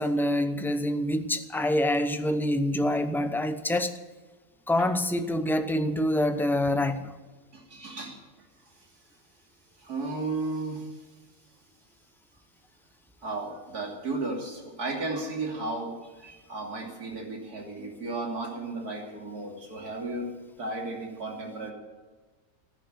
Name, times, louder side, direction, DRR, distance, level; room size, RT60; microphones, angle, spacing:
voice 1, 0.0-4.0 4.7-7.1, left 1 dB, 5° left, 0.3 m, -26 dB
voice 2, 7.5-8.2 9.8-11.0 13.2-21.7, right 2 dB, 80° right, 3.4 m, -34 dB
13.5 x 10.5 x 7.9 m
omnidirectional pair, 1.6 m